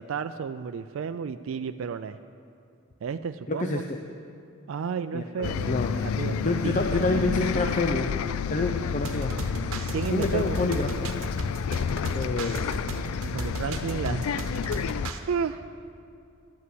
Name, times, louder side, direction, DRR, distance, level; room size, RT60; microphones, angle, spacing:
voice 1, 0.0-2.2 3.0-3.8 4.7-7.2 9.6-10.6 13.2-14.4 15.3-15.6, right 6 dB, 65° right, 9 dB, 0.3 m, -32 dB
voice 2, 3.5-4.0 5.1-5.9 6.4-8.1 8.5-9.3 10.1-11.1 12.1-12.8 14.1-14.2, left 2 dB, 35° left, 3 dB, 0.6 m, -28 dB
Bus, 5.4-15.1, left 7 dB, 90° left, 0.4 m, -30 dB
sound 1, 9.0-15.2, right 2 dB, 80° right, 1.0 m, -35 dB
12.5 x 8.4 x 7.7 m, 2.5 s
head